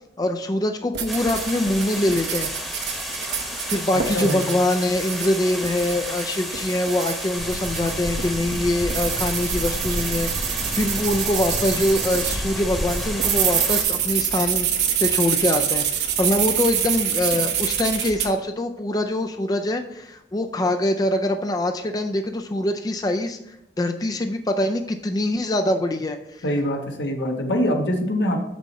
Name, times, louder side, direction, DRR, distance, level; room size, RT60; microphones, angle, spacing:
voice 1, 0.2-2.5 3.7-14.7 15.0-26.4, left 1 dB, 20° left, 6 dB, 0.4 m, -24 dB
sound 1, 0.9-12.4 12.9-18.3, right 9 dB, 75° right, 0.9 m, -26 dB
sound 2, 1.1-13.8, equal, ahead, 1.0 m, -32 dB
voice 2, 3.9-4.4 26.4-28.4, equal, 80° left, 2 dB, 1.3 m, -24 dB
sound 3, 7.3-13.4, equal, 50° right, 1.2 m, -32 dB
6.7 x 6.3 x 4.1 m, 0.83 s
head